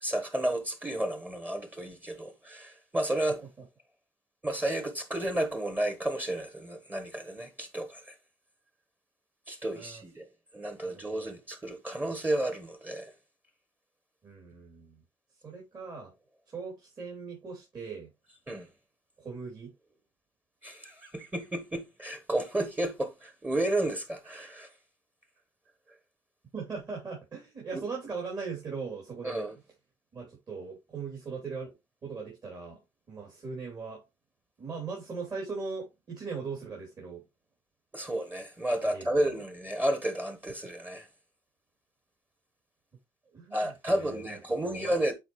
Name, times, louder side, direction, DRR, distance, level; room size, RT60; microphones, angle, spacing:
voice 1, 0.0-3.4 4.4-8.1 9.5-10.2 10.5-13.1 18.5-18.7 20.6-24.7 27.7-27.8 29.2-29.5 37.9-41.1 43.5-45.1, right 1 dB, 15° right, 1.1 m, -32 dB
voice 2, 10.9-11.3 14.2-15.0 15.4-16.1 16.5-18.1 19.2-19.7 26.5-29.5 30.1-32.8 33.1-34.0 34.6-37.2 38.8-39.3 43.3-44.9, right 5 dB, 45° right, 3.1 m, -39 dB
7.8 x 4.2 x 3.1 m
cardioid pair, 85°, 10 cm